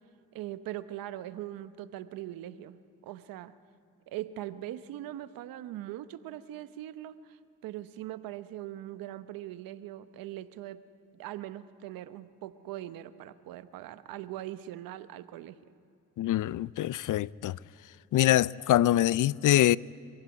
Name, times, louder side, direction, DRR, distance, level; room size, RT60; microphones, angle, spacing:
voice 1, 0.3-3.6 4.1-10.8 11.1-15.6, right 13 dB, 90° right, 0.9 m, -41 dB
voice 2, 16.2-17.6 18.1-19.8, left 13 dB, 65° left, 0.5 m, -24 dB
25.0 x 16.0 x 9.5 m
supercardioid pair, 55°, 34 cm